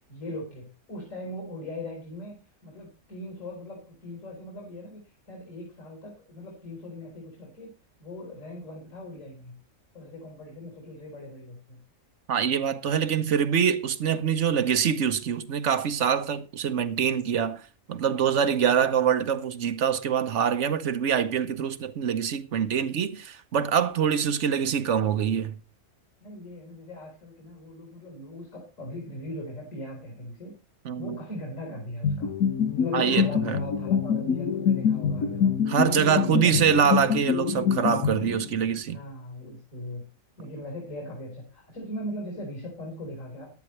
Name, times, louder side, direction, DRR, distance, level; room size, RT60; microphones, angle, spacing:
voice 1, 0.1-5.0 5.3-7.7 8.0-9.5 9.9-11.8 18.6-19.1 26.2-30.5 31.0-32.3 32.7-35.5 36.0-37.1 38.9-40.0 40.4-43.5, left 1 dB, 60° left, 4.6 m, -39 dB
voice 2, 12.3-17.6 17.9-25.5 30.8-31.2 32.9-33.6 35.7-39.0, right 8 dB, 55° right, 1.1 m, -25 dB
sound 1, 32.0-38.7, left 7 dB, 80° left, 1.6 m, -25 dB
14.5 x 11.0 x 3.2 m
omnidirectional pair, 1.5 m